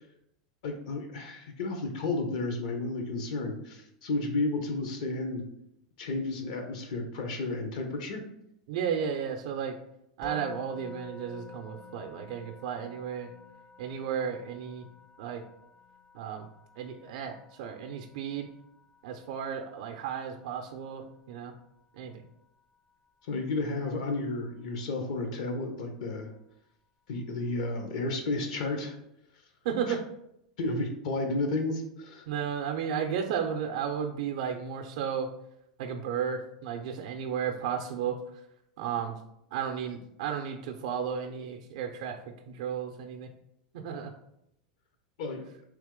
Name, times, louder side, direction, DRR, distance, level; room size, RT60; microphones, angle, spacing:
voice 1, 0.6-5.5 6.0-8.2 23.3-26.3 27.1-29.0 30.6-32.3 45.2-45.4, left 2 dB, 70° left, 4 dB, 0.8 m, -32 dB
voice 2, 8.7-9.8 10.2-13.3 13.8-14.8 15.2-15.4 16.1-16.5 16.8-18.5 19.0-21.5 21.9-22.2 29.6-30.0 32.3-35.3 35.8-38.2 38.8-39.2 39.5-42.2 42.5-43.3 43.7-44.1, right 7 dB, 70° right, 4 dB, 0.4 m, -33 dB
Musical instrument, 10.2-21.3, left 3 dB, 15° left, 0.4 m, -50 dB
3.4 x 2.9 x 3.6 m, 0.79 s
hypercardioid pair, 105°, 4 cm